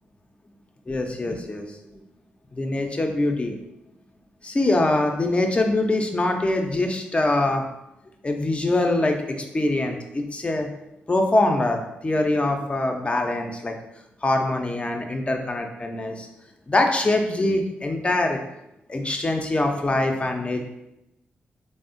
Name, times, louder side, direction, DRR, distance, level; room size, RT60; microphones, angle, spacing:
voice 1, 0.9-1.6 2.5-3.6 4.4-7.7 8.2-10.7 11.1-13.7 14.2-16.3 16.7-18.4 18.9-20.6, left 2 dB, 25° left, 3 dB, 0.5 m, -23 dB
3.5 x 2.0 x 2.5 m, 0.87 s
supercardioid pair, 55°, 4 cm